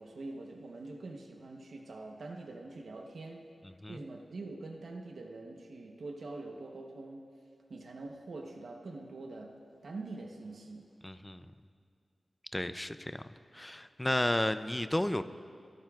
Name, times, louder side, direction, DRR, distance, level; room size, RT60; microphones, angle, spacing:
voice 1, 0.0-3.4 3.9-7.3 7.7-10.9, right 2 dB, 80° right, 2 dB, 0.9 m, -44 dB
voice 2, 11.0-11.5 12.5-13.2 13.5-15.2, left 1 dB, 15° left, 11 dB, 0.4 m, -32 dB
21.0 x 12.0 x 2.4 m, 2.3 s
wide cardioid pair, 75°, 0 cm